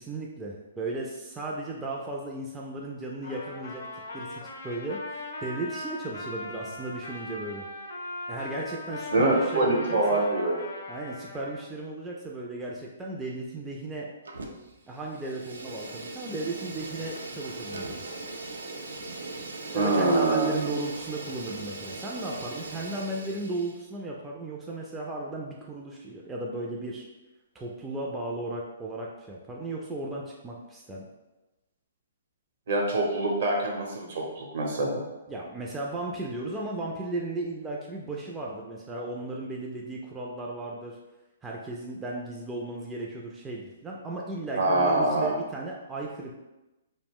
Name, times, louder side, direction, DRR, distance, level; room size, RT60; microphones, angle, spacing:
voice 1, 0.0-3.8 4.1-7.7 8.3-10.3 10.9-14.1 14.9-18.0 19.7-27.1 27.5-31.1 35.3-41.0 41.4-46.3, right 2 dB, 10° right, -3 dB, 0.3 m, -35 dB
Trumpet, 3.2-11.6, left 2 dB, 75° left, 0.5 m, -39 dB
voice 2, 9.1-10.6 19.7-20.6 32.7-35.0 44.6-45.3, right 2 dB, 60° right, -1 dB, 0.8 m, -24 dB
Fire, 14.3-14.8 15.1-23.8, right 2 dB, 85° right, 0.4 m, -39 dB
2.3 x 2.0 x 3.5 m, 1.0 s
hypercardioid pair, 140°, 0 cm